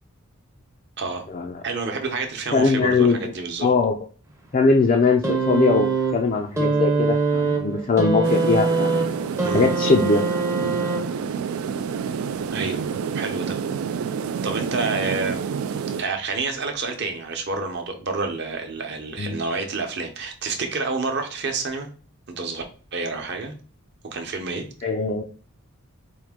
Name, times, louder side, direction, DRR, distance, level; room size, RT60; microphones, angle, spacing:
voice 1, 1.6-3.7 9.4-9.7 12.5-12.8 13.1-13.6 14.4-15.4 16.0-21.9 22.3-22.6 22.9-23.5 24.1-24.7, right 3 dB, 50° right, 4 dB, 0.8 m, -28 dB
voice 2, 2.5-3.3 3.6-4.0 4.5-5.9 6.1-9.0 9.5-10.3 19.2-19.5 24.8-25.2, left 4 dB, 35° left, 1 dB, 0.4 m, -21 dB
sound 1, 5.2-11.4 12.4-12.6, right 4 dB, 15° right, 0.6 m, -23 dB
sound 2, 8.2-16.0, right 6 dB, 70° right, 0.3 m, -28 dB
4.6 x 2.7 x 3.6 m, 0.39 s
head